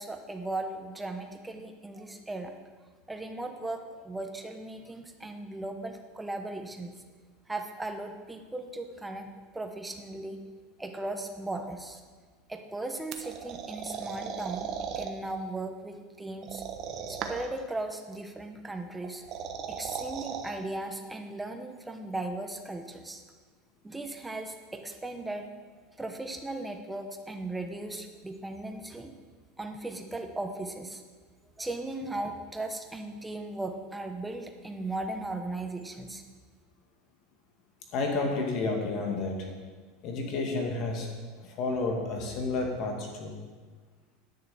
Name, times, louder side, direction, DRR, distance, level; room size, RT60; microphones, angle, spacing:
voice 1, 0.0-2.5 3.1-6.9 7.5-10.4 10.8-12.0 12.5-14.7 14.9-16.6 17.1-19.2 19.7-23.2 23.8-25.5 26.0-29.1 29.6-31.0 31.6-36.2, right 2 dB, 5° right, 5 dB, 1.0 m, -37 dB
sound 1, 13.1-15.1 16.4-17.6 19.0-20.5, right 7 dB, 40° right, 1.0 m, -37 dB
voice 2, 37.9-39.5 40.0-41.1 41.4-43.3, left 3 dB, 40° left, 1 dB, 2.2 m, -31 dB
10.5 x 6.7 x 8.2 m, 1.4 s
supercardioid pair, 155°, 0 cm